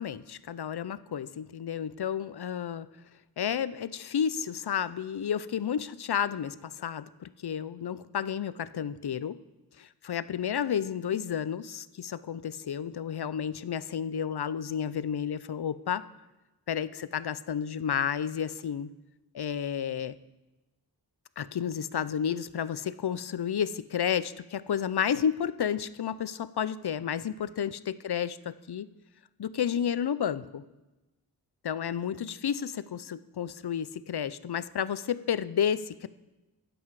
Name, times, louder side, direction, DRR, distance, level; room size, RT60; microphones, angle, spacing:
voice 1, 0.0-2.9 3.4-9.4 9.8-16.0 16.7-18.9 19.3-20.1 21.4-28.9 29.4-30.6 31.6-36.1, left 8 dB, 70° left, 16 dB, 0.6 m, -31 dB
24.0 x 8.0 x 4.8 m, 1.1 s
wide cardioid pair, 55°, 40 cm